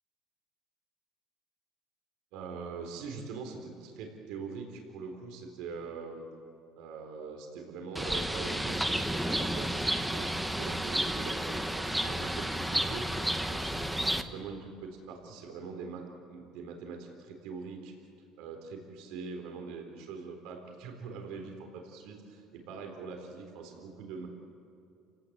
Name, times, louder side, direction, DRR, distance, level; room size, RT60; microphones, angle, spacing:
voice 1, 2.3-6.2 6.7-13.0 13.4-17.9 18.4-24.3, right 5 dB, 75° right, 3 dB, 3.9 m, -43 dB
Bird, 8.0-14.2, right 1 dB, 5° right, 1.0 m, -31 dB
29.5 x 18.0 x 8.1 m, 2.7 s
cardioid pair, 150°, 0 cm